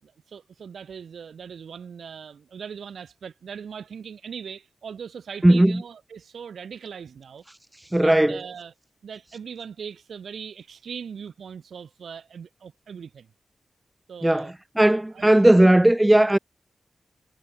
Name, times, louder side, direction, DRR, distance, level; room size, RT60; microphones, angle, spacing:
voice 1, 0.0-7.4 8.0-8.7 9.0-13.3 14.1-14.5 14.9-15.3, right 7 dB, 90° right, 6.2 m, -40 dB
voice 2, 5.4-5.8 7.9-8.4 14.2-16.4, right 1 dB, 10° right, 0.3 m, -17 dB
wide cardioid pair, 160°, 0 cm